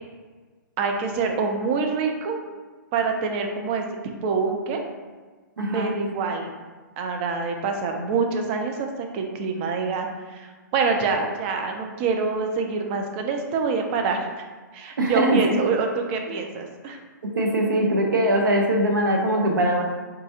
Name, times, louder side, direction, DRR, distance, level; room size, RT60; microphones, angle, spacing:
voice 1, 0.8-2.4 2.9-4.9 5.7-6.5 7.0-14.3 14.7-17.0, right 4 dB, 35° right, 3 dB, 0.5 m, -26 dB
voice 2, 5.6-6.0 15.0-15.6 17.2-19.8, right 1 dB, 75° right, 1 dB, 0.7 m, -21 dB
3.8 x 2.4 x 2.8 m, 1.4 s
figure-of-eight pair, 120°, 11 cm